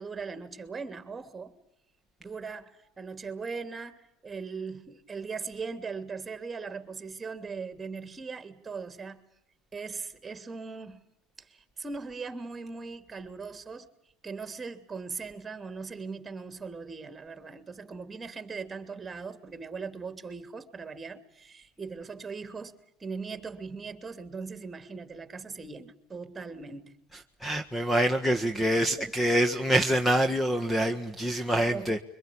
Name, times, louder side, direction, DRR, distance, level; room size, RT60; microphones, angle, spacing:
voice 1, 0.0-1.5 2.2-9.2 9.7-11.0 11.4-13.9 14.2-27.0 28.5-28.6 29.0-29.1 29.5-29.7 31.6-31.9, right 4 dB, 20° right, 2.9 m, -39 dB
voice 2, 27.4-32.0, right 1 dB, 5° left, 1.6 m, -25 dB
25.0 x 23.5 x 8.6 m
supercardioid pair, 90°, 0 cm